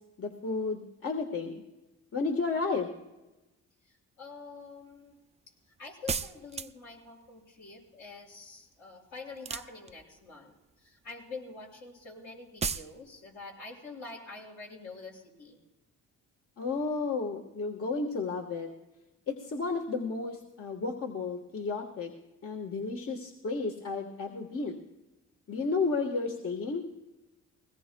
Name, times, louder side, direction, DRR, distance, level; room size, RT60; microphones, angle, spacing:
voice 1, 0.2-1.6 2.1-2.9 16.6-18.7 19.3-22.1 22.4-24.8 25.5-26.8, left 4 dB, 50° left, 2 dB, 1.4 m, -32 dB
voice 2, 3.9-5.1 5.8-15.6, left 3 dB, 70° left, -2 dB, 5.7 m, -46 dB
sound 1, 6.1-7.0 9.4-10.2 12.6-12.9, right 5 dB, 20° right, 0.4 m, -34 dB
21.5 x 18.0 x 2.3 m, 1.0 s
cardioid pair, 90°, 30 cm